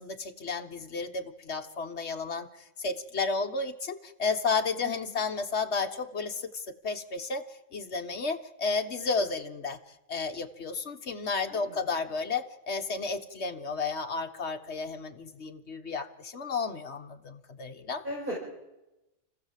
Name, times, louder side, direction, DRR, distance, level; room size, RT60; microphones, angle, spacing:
voice 1, 0.0-2.5 2.8-7.5 7.7-9.8 10.1-18.0, left 4 dB, 65° left, 6 dB, 1.7 m, -32 dB
voice 2, 4.8-5.2 11.5-11.8 18.0-18.4, equal, 45° right, -3 dB, 6.0 m, -37 dB
29.5 x 15.5 x 7.5 m, 1.0 s
omnidirectional pair, 1.3 m